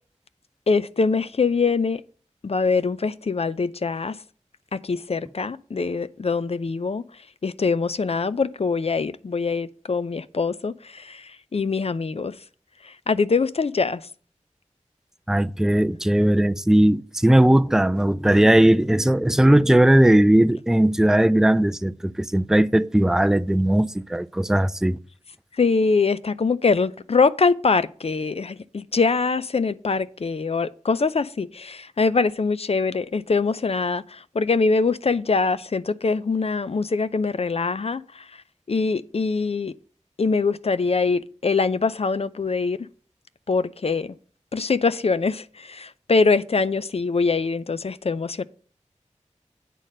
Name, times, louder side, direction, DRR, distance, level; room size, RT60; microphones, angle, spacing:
voice 1, 0.7-2.0 2.4-4.2 4.7-7.0 7.4-12.3 12.8-14.0 25.6-38.2 38.7-39.7 40.2-42.8 43.5-44.1 44.5-48.4, left 4 dB, 55° left, 0.5 m, -23 dB
voice 2, 15.3-25.0, right 1 dB, 5° right, 0.3 m, -18 dB
9.1 x 4.1 x 6.3 m
wide cardioid pair, 70°, 12 cm